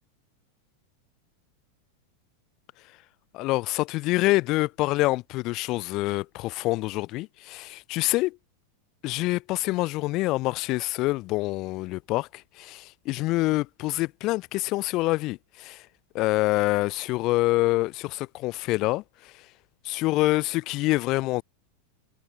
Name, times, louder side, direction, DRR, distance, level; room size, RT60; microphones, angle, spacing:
voice 1, 3.3-8.4 9.0-15.8 16.1-19.0 19.8-21.4, left 20 dB, 45° left, 2.4 m, -26 dB
figure-of-eight pair, 90°, 0 cm